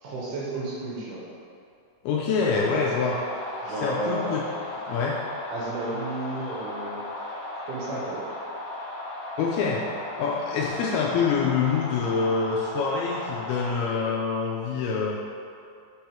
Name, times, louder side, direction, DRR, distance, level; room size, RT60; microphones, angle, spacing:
voice 1, 0.0-1.2 3.6-4.3 5.5-7.0 7.7-8.2, right 2 dB, 70° right, -6 dB, 2.8 m, -32 dB
voice 2, 2.0-3.2 3.8-4.4 4.8-5.2 9.4-9.9 10.2-15.2, left 5 dB, 85° left, -3 dB, 2.3 m, -25 dB
sound 1, 2.4-13.7, left 1 dB, 65° left, 2.2 m, -36 dB
6.2 x 3.6 x 4.4 m, 2.4 s
omnidirectional pair, 4.8 m